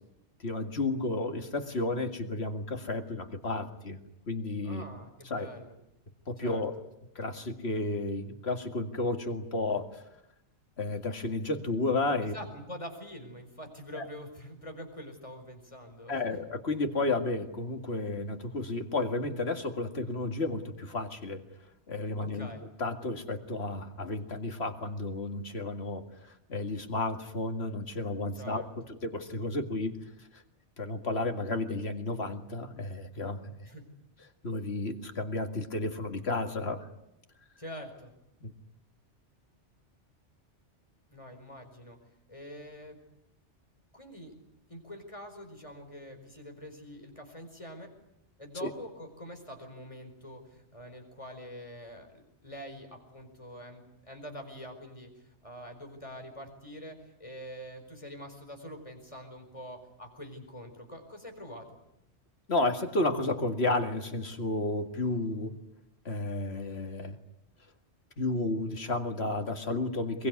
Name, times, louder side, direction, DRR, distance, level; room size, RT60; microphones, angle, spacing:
voice 1, 0.4-4.0 4.3-4.8 5.3-5.5 6.3-6.7 7.2-10.0 10.8-12.3 14.0-14.1 16.1-21.4 21.9-22.5 22.8-28.6 29.0-30.0 30.8-33.5 34.4-36.9 38.4-38.5 48.6-48.7 62.5-65.5 66.1-67.2 68.2-70.3, left 2 dB, 60° left, 6 dB, 2.3 m, -32 dB
voice 2, 4.6-5.8 6.4-6.6 12.3-16.4 22.2-22.6 28.3-28.7 33.6-33.9 37.6-38.1 41.1-42.0 42.3-43.0 43.9-44.3 44.7-47.9 48.4-61.7, equal, 25° left, 4 dB, 4.8 m, -45 dB
23.5 x 23.0 x 9.6 m, 0.85 s
omnidirectional pair, 1.2 m